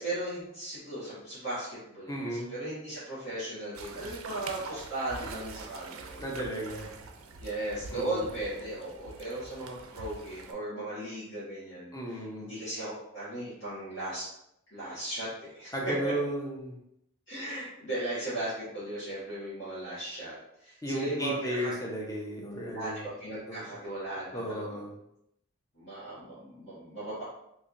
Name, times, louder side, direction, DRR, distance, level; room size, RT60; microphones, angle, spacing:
voice 1, 0.0-6.2 7.4-11.9 12.4-14.3 14.7-16.1 17.3-21.7 22.7-24.8 25.7-27.2, right 1 dB, 60° left, -13 dB, 1.5 m, -37 dB
voice 2, 2.1-2.5 4.3-4.4 6.2-6.9 7.9-8.3 11.9-12.5 15.7-16.8 20.8-23.1 23.5-23.7 24.3-24.9, right 1 dB, 15° left, -2 dB, 0.5 m, -34 dB
sound 1, 3.7-10.5, right 4 dB, 80° right, 0.4 m, -45 dB
3.2 x 2.7 x 2.6 m, 0.79 s
head